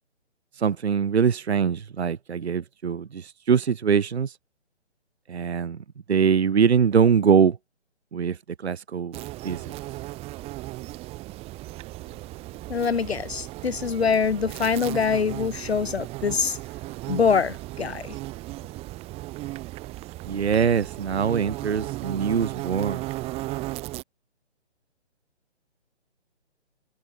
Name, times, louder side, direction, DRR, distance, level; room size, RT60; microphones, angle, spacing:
voice 1, 0.6-4.3 5.3-5.8 6.1-7.6 8.1-8.4 8.6-9.6 20.2-23.0, right 6 dB, 65° right, 1.0 m, -23 dB
sound 1, 9.1-24.0, right 18 dB, 15° right, 3.8 m, -36 dB
voice 2, 12.7-16.6 17.1-18.1, left 6 dB, 65° left, 2.7 m, -24 dB
figure-of-eight pair, 140°, 34 cm